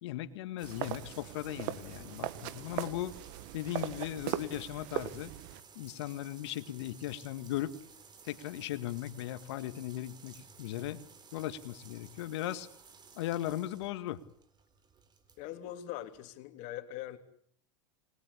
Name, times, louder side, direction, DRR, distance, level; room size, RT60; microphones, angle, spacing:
voice 1, 0.0-3.1 3.5-5.3 5.8-7.8 8.2-11.0 11.3-12.7 13.1-14.2, left 13 dB, 70° left, 12 dB, 1.9 m, -37 dB
sound 1, 0.6-16.4, right 5 dB, 30° right, 4.2 m, -56 dB
sound 2, 0.6-5.6, right 14 dB, 60° right, 1.7 m, -39 dB
voice 2, 15.4-17.2, left 13 dB, 55° left, 8 dB, 3.3 m, -42 dB
28.5 x 20.5 x 8.6 m, 0.63 s
hypercardioid pair, 100°, 15 cm